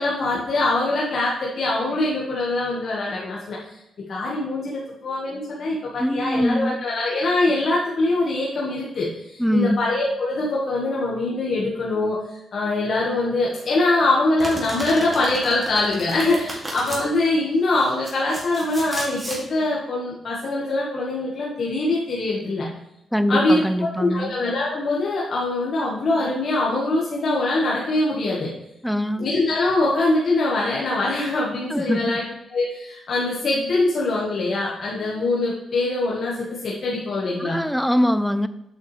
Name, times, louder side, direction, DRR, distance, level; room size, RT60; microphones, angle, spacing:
voice 1, 0.0-3.6 4.1-12.2 12.5-22.7 23.3-28.5 29.2-32.2 32.5-37.6, left 2 dB, 60° left, -4 dB, 1.5 m, -23 dB
voice 2, 6.0-6.8 9.4-9.9 23.1-24.3 28.8-29.3 31.7-32.2 37.4-38.5, equal, ahead, 13 dB, 0.4 m, -22 dB
Domestic sounds home sounds, 14.4-17.0 17.8-19.4, right 1 dB, 30° right, 2.3 m, -34 dB
8.0 x 5.8 x 3.3 m, 0.86 s
cardioid pair, 75°, 0 cm